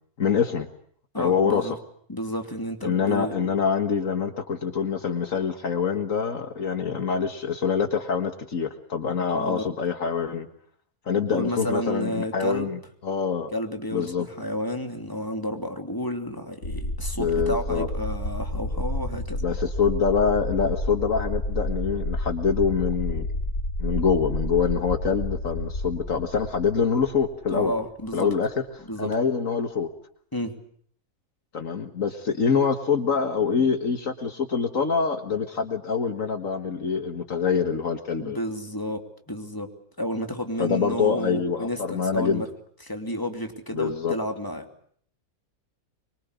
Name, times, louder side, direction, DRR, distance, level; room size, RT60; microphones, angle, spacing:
voice 1, 0.2-0.7 1.2-1.8 2.8-10.5 11.1-13.5 13.9-14.3 17.2-17.9 19.4-23.3 23.8-27.7 28.1-28.5 28.8-29.9 31.5-38.4 40.6-42.4 43.7-44.2, left 6 dB, 65° left, 8 dB, 2.0 m, -25 dB
voice 2, 1.1-1.7 2.1-3.6 9.3-9.6 11.3-12.7 13.5-19.4 27.5-28.3 28.9-29.1 30.3-30.6 38.2-39.7 40.0-42.5 42.8-44.7, equal, 15° left, 5 dB, 2.9 m, -31 dB
sound 1, 16.6-28.1, left 1 dB, 90° left, 3.8 m, -30 dB
25.0 x 23.5 x 8.3 m, 0.62 s
omnidirectional pair, 1.5 m